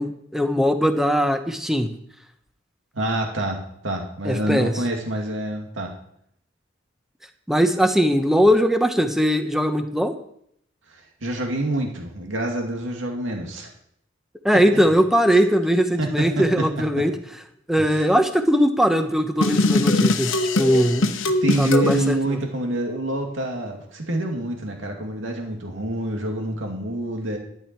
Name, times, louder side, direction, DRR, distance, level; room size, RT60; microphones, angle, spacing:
voice 1, 0.0-1.9 4.2-4.7 7.5-10.1 14.4-17.1 17.7-21.1 21.6-22.4, equal, ahead, 7 dB, 0.9 m, -20 dB
voice 2, 2.9-5.9 11.2-13.7 14.5-14.8 16.0-16.7 17.0-17.1 17.8-18.1 21.4-27.4, right 1 dB, 80° right, 2 dB, 2.4 m, -27 dB
sound 1, 19.4-22.0, left 2 dB, 80° left, 1.0 m, -21 dB
12.0 x 10.5 x 4.6 m, 0.70 s
head